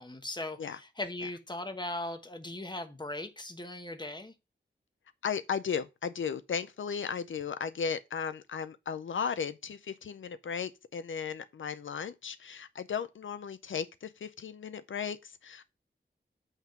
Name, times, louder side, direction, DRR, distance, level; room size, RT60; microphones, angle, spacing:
voice 1, 0.0-4.3, left 2 dB, 20° left, 1.2 m, -39 dB
voice 2, 5.2-15.6, left 6 dB, 80° left, 0.5 m, -35 dB
8.1 x 3.6 x 5.8 m
wide cardioid pair, 80°, 20 cm